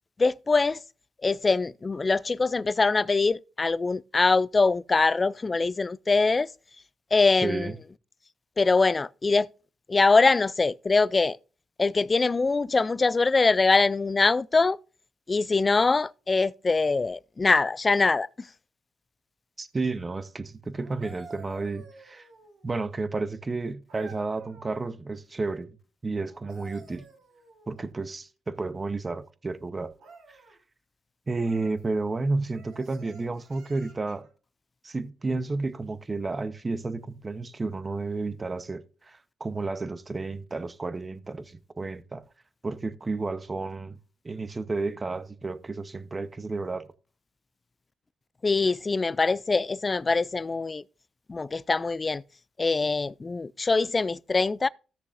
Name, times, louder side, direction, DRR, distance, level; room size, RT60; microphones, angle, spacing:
voice 1, 0.2-0.8 1.2-6.5 7.1-7.7 8.6-9.5 9.9-11.4 11.8-14.8 15.3-18.5 48.4-50.8 51.3-52.2 52.6-54.7, left 3 dB, 30° left, 0.4 m, -23 dB
voice 2, 7.4-7.8 19.6-22.3 22.6-25.7 26.0-27.1 27.7-29.9 31.3-34.3 34.8-42.2 42.6-44.0 44.2-46.9, right 3 dB, 30° right, 0.9 m, -31 dB
sound 1, 20.7-22.7 23.9-24.9 26.3-27.9 30.0-30.6 31.4-31.8 32.5-34.3 36.2-36.4, right 3 dB, 80° right, 3.1 m, -51 dB
16.0 x 6.8 x 2.6 m
cardioid pair, 70°, 0 cm